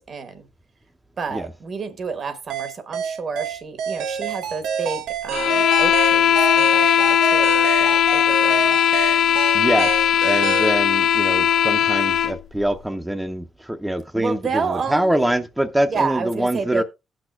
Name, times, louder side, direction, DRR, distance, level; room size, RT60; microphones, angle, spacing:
voice 1, 0.1-0.4 1.2-8.8 14.1-15.3 15.9-16.8, right 5 dB, 50° right, 1.0 m, -29 dB
sound 1, 2.5-10.8, right 7 dB, 90° right, 0.8 m, -28 dB
sound 2, 5.3-12.4, left 9 dB, 65° left, 0.5 m, -18 dB
voice 2, 9.5-9.9 10.2-16.8, right 1 dB, 5° right, 0.6 m, -24 dB
18.0 x 6.2 x 2.4 m
cardioid pair, 90°, 0 cm